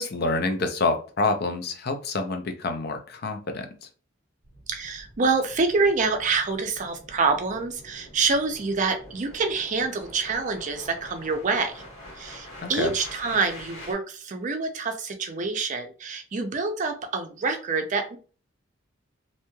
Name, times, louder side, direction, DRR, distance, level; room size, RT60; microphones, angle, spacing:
voice 1, 0.0-3.9 12.6-12.9, left 3 dB, 50° left, 6 dB, 0.5 m, -27 dB
sound 1, 4.4-13.9, left 1 dB, 80° left, 1.5 m, -46 dB
voice 2, 4.7-11.8 12.2-18.2, right 4 dB, 40° right, 6 dB, 0.5 m, -26 dB
3.0 x 2.7 x 2.2 m, 0.37 s
head